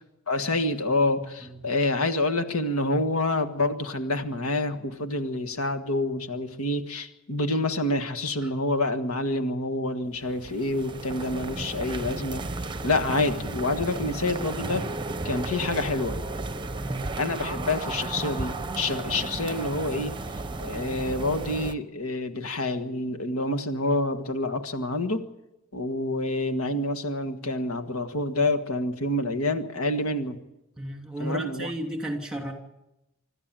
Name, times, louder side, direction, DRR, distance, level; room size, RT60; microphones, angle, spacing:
voice 1, 0.3-12.4 12.8-14.9 15.2-16.2 17.2-20.2 20.6-25.3 25.7-30.4 31.2-31.7, left 2 dB, 85° left, 9 dB, 1.7 m, -27 dB
sound 1, 10.2-21.7, right 2 dB, 20° right, 0.9 m, -34 dB
voice 2, 16.8-17.1 30.8-32.5, right 1 dB, 5° right, 3 dB, 2.9 m, -33 dB
25.5 x 13.5 x 8.9 m, 0.90 s
head